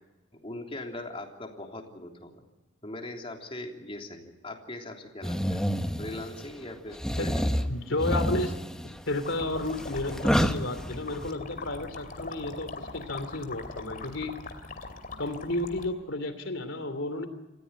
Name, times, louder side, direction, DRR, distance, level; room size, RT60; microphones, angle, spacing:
voice 1, 0.4-2.4 2.8-5.6 6.0-7.7, left 1 dB, 30° left, 2 dB, 3.3 m, -40 dB
sound 1, 5.2-6.5 6.9-11.3, equal, 5° left, 1.1 m, -29 dB
voice 2, 7.7-8.6 9.1-14.3 15.2-17.3, left 2 dB, 85° left, 10 dB, 3.0 m, -32 dB
sound 2, 9.1-15.9, left 3 dB, 50° left, 2.7 m, -42 dB
27.0 x 15.5 x 9.0 m, 1.1 s
head